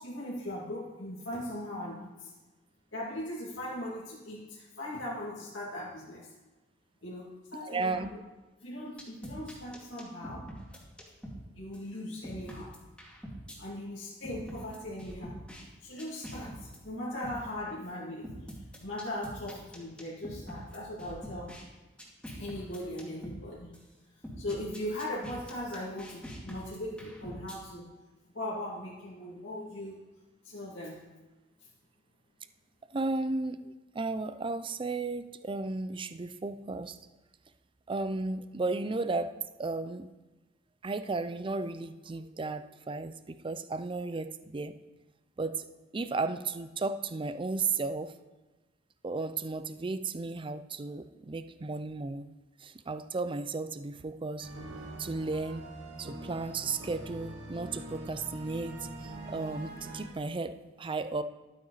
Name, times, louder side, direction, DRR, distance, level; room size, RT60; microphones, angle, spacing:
voice 1, 0.0-2.3 2.9-6.3 7.0-8.0 8.6-10.5 11.5-12.7 13.6-15.4 15.8-18.3 18.8-21.5 22.4-23.7 24.4-27.9 28.3-30.0 30.4-31.0, left 1 dB, 80° left, -6 dB, 2.4 m, -39 dB
voice 2, 7.6-8.1 32.9-37.0 37.9-40.1 40.8-44.8 45.4-45.7 45.9-48.1 49.0-52.3 52.6-54.5 55.0-55.7 56.0-61.2, right 3 dB, 25° right, 11 dB, 0.5 m, -34 dB
sound 1, 9.0-11.4 11.7-11.8 12.2-13.6 14.2-15.6 16.0-16.8 17.2-17.4 18.2-21.6 22.0-23.4 23.7-23.8 24.2-27.6, equal, 5° left, 2.2 m, -44 dB
sound 2, 54.4-60.1, right 1 dB, 85° right, 2.5 m, -43 dB
12.0 x 8.8 x 4.0 m, 1.1 s
head